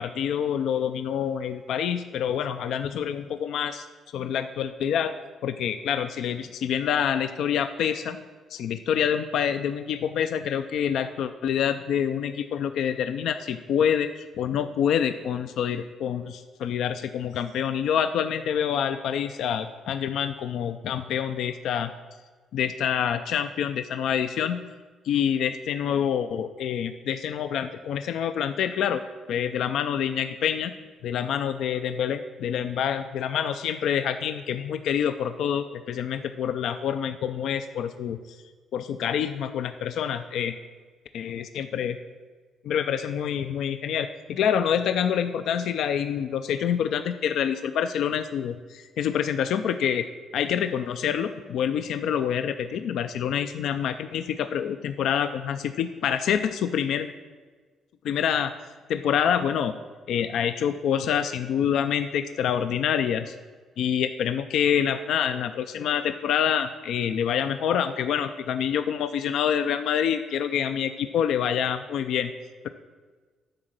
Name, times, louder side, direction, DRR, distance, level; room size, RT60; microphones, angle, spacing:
voice 1, 0.0-3.9 4.1-5.1 5.4-8.2 8.5-21.9 22.5-24.6 25.0-29.0 29.3-30.7 31.0-38.2 38.7-40.5 41.1-42.0 42.6-50.1 50.3-57.1 58.0-58.5 58.9-59.7 60.1-63.3 63.8-72.3, left 8 dB, 80° left, 9 dB, 0.4 m, -26 dB
10.5 x 3.9 x 7.5 m, 1.4 s
cardioid pair, 90°, 0 cm